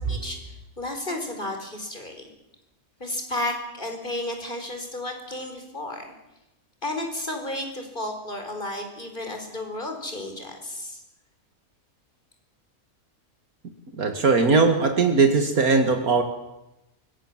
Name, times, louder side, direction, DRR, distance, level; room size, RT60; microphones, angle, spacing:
voice 1, 0.1-2.2 3.0-6.1 6.8-11.0, left 1 dB, 35° left, 4 dB, 4.8 m, -33 dB
voice 2, 14.0-16.2, right 4 dB, 75° right, 6 dB, 2.4 m, -19 dB
24.5 x 23.0 x 7.5 m, 0.94 s
omnidirectional pair, 1.5 m